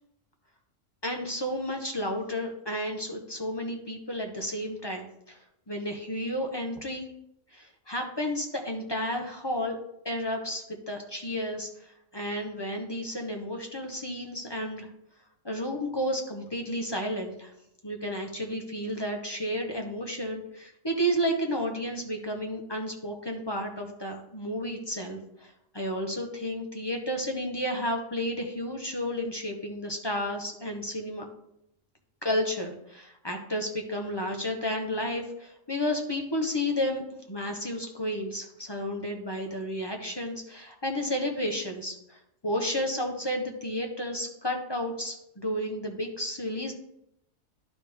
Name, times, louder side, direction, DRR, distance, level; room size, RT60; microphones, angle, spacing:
voice 1, 1.0-7.1 7.5-9.8 10.0-14.9 15.4-17.5 17.8-31.3 32.2-37.0 37.3-46.7, equal, 20° left, 2 dB, 0.8 m, -32 dB
12.0 x 4.1 x 3.5 m, 0.79 s
omnidirectional pair, 1.4 m